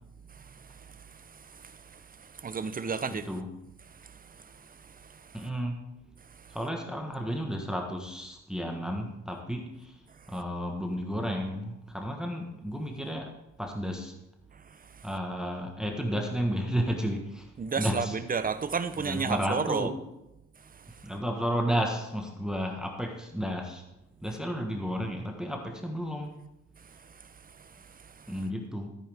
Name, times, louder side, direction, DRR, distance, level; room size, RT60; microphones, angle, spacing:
voice 1, 1.1-3.3 4.0-4.2 4.4-5.5 6.4-6.6 15.0-15.1 17.6-19.9 20.8-20.9 27.2-27.3 27.6-27.7 28.2-28.3, right 5 dB, 30° right, 0.8 m, -33 dB
voice 2, 3.1-3.5 5.3-5.8 6.5-10.0 10.3-13.3 13.6-14.1 15.0-17.5 17.8-18.2 18.9-19.9 21.0-23.8 24.2-26.4 28.3-28.9, equal, ahead, 1.4 m, -32 dB
14.0 x 9.0 x 3.6 m
cardioid pair, 90°, 30 cm